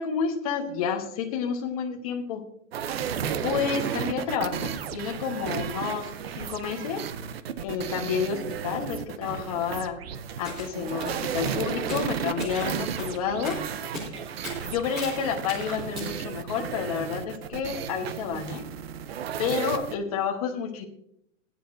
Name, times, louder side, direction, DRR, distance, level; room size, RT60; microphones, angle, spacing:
voice 1, 0.0-2.4 3.4-7.0 7.6-10.0 10.4-13.6 14.6-18.6 19.4-20.8, left 7 dB, 30° left, 3 dB, 1.1 m, -30 dB
sound 1, 2.7-19.9, right 8 dB, 50° right, 0.6 m, -33 dB
sound 2, 10.3-16.2, left 1 dB, 5° right, 0.4 m, -39 dB
16.5 x 9.6 x 2.6 m, 0.74 s
hypercardioid pair, 180°, 40 cm